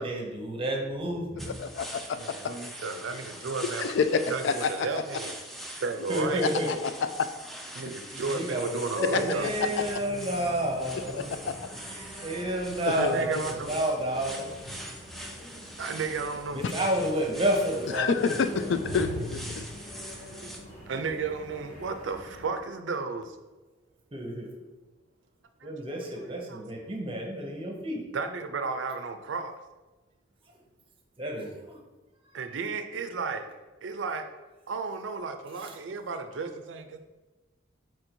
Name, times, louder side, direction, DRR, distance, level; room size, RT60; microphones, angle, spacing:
voice 1, 0.0-1.6 6.1-6.7 8.1-11.3 11.9-14.5 16.5-18.7 24.1-24.5 25.6-28.0 31.2-31.8 35.6-35.8, right 1 dB, 30° right, 1 dB, 0.7 m, -30 dB
sound 1, 1.4-20.6, equal, ahead, 0.4 m, -43 dB
voice 2, 1.5-2.4 3.8-4.7 6.7-6.9 7.2-7.3 9.0-9.2 9.8-9.9 11.2-11.6 12.9-13.1 16.6-16.7 17.9-19.7, left 5 dB, 75° left, 10 dB, 0.3 m, -28 dB
voice 3, 2.1-3.9 4.3-5.4 5.8-6.4 7.7-9.7 12.9-13.7 15.8-16.7 20.9-23.3 25.6-25.7 26.5-26.6 28.1-29.5 32.3-33.5 33.8-34.3 34.7-37.0, right 4 dB, 90° right, 8 dB, 0.5 m, -33 dB
sound 2, 9.0-22.5, equal, 45° left, 1.3 m, -44 dB
4.5 x 2.6 x 4.4 m, 1.2 s
head